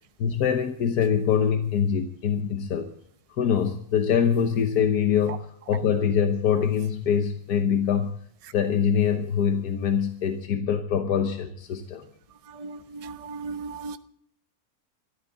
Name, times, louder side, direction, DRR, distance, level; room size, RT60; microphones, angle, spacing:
voice 1, 0.2-2.9 3.4-5.4 5.7-8.1 8.5-12.0, left 8 dB, 90° left, 1.6 m, -24 dB
voice 2, 12.5-14.0, right 4 dB, 30° right, 0.7 m, -36 dB
23.5 x 14.0 x 3.9 m
omnidirectional pair, 1.6 m